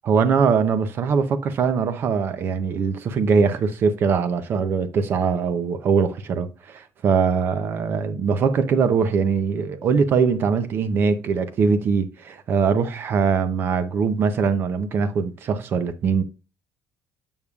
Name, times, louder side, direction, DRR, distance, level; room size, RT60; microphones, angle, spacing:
voice 1, 0.0-16.2, right 5 dB, 40° right, 0.5 m, -22 dB
7.0 x 6.6 x 2.3 m
cardioid pair, 175°, 6 cm